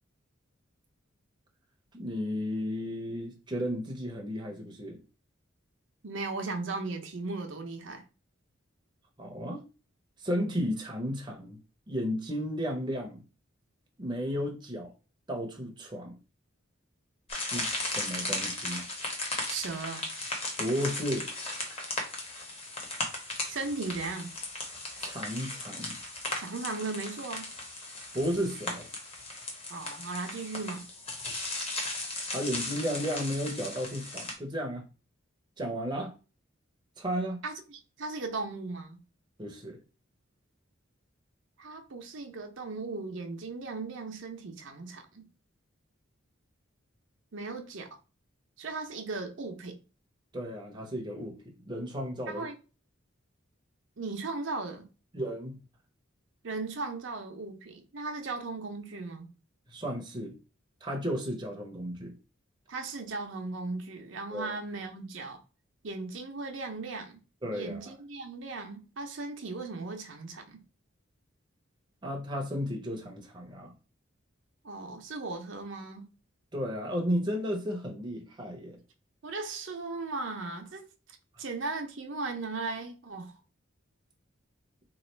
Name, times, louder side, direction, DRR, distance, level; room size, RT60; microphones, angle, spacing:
voice 1, 1.9-5.0 9.2-9.6 10.2-11.6 11.9-13.2 14.0-14.9 15.3-16.2 17.5-18.9 20.6-21.3 25.0-26.0 28.1-28.9 32.3-34.8 35.6-36.1 37.0-37.4 39.4-39.8 50.3-52.5 55.1-55.6 59.7-60.3 60.8-62.2 64.3-64.6 67.4-67.9 72.0-73.7 76.5-78.8 81.3-81.4, equal, 20° right, 0.6 m, -33 dB
voice 2, 6.0-8.0 19.5-20.0 23.4-24.3 26.4-27.5 29.7-30.9 37.4-39.0 41.6-45.3 47.3-47.9 48.6-49.8 52.3-52.5 54.0-54.8 56.4-59.3 62.7-65.4 65.8-67.2 67.5-70.6 74.6-76.1 79.2-80.8 81.4-83.3, right 3 dB, 65° right, 0.6 m, -37 dB
sound 1, 17.3-34.3, left 2 dB, 30° left, 0.9 m, -37 dB
3.0 x 2.4 x 4.3 m
head